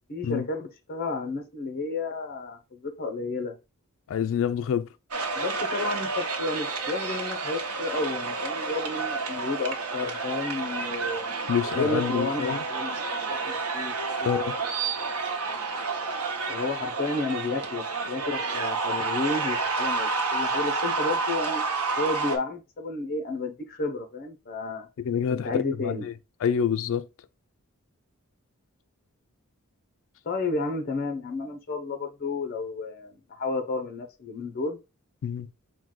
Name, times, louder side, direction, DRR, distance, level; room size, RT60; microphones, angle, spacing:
voice 1, 0.1-3.6 5.3-11.3 11.7-13.0 13.3-13.9 14.2-14.4 16.5-21.6 22.0-24.9 25.3-26.1 30.2-34.8, left 3 dB, 45° left, 0.7 m, -32 dB
voice 2, 4.1-4.9 11.5-12.6 14.2-14.6 25.0-25.5 25.8-26.1 26.4-27.1 35.2-35.5, left 8 dB, 65° left, 0.3 m, -27 dB
sound 1, 5.1-22.4, right 4 dB, 85° right, 0.9 m, -30 dB
4.5 x 2.2 x 3.7 m
head